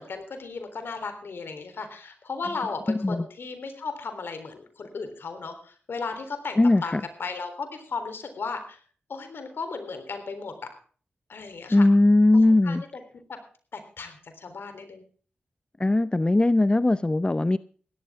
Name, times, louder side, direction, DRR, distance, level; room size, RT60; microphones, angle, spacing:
voice 1, 0.0-8.8 9.1-10.5 11.3-11.9 12.6-12.8 13.7-15.0, left 4 dB, 70° left, 7 dB, 3.6 m, -35 dB
voice 2, 2.9-3.2 6.6-7.0 11.7-12.8 15.8-17.6, left 2 dB, 25° left, 15 dB, 0.6 m, -20 dB
16.5 x 13.0 x 3.6 m, 0.42 s
supercardioid pair, 40°, 4 cm